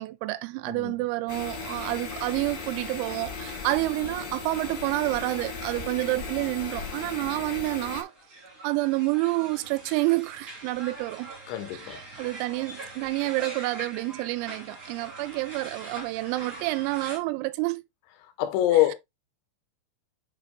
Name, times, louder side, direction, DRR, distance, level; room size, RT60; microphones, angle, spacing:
voice 1, 0.0-8.1 8.6-11.3 11.7-17.8, right 20 dB, 90° right, 3.3 m, -29 dB
sound 1, 1.3-8.0, left 4 dB, 45° left, 1.9 m, -37 dB
sound 2, 8.0-17.2, right 2 dB, 25° right, 1.6 m, -43 dB
voice 2, 11.5-12.0 18.2-18.9, left 13 dB, 75° left, 3.1 m, -25 dB
8.2 x 5.1 x 2.4 m
omnidirectional pair, 5.9 m